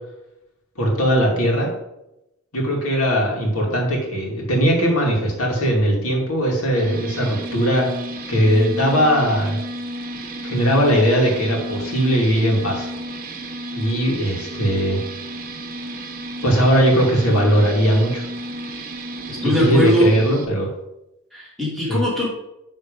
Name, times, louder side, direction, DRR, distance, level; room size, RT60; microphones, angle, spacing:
voice 1, 0.8-1.7 2.5-7.9 8.3-9.6 10.4-12.9 13.7-15.0 16.4-18.3 19.4-20.7 21.9-22.0, equal, 80° left, -1 dB, 2.3 m, -19 dB
sound 1, 6.7-20.4, right 1 dB, 40° right, 0.9 m, -32 dB
voice 2, 19.3-20.1 21.3-22.3, equal, ahead, -7 dB, 2.6 m, -20 dB
10.5 x 3.8 x 5.3 m, 0.89 s
head